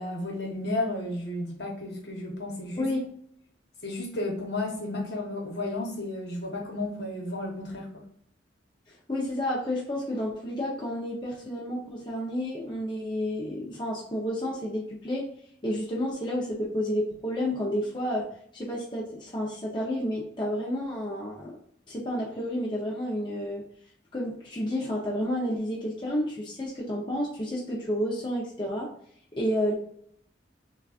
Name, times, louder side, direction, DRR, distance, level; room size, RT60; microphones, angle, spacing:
voice 1, 0.0-2.9 3.8-8.0, left 2 dB, 60° left, 0 dB, 1.1 m, -33 dB
voice 2, 9.1-15.3 15.6-18.3 18.5-21.5 21.9-23.6 24.1-28.9 29.3-29.7, equal, 25° left, -4 dB, 0.7 m, -30 dB
6.1 x 2.4 x 2.4 m, 0.64 s
head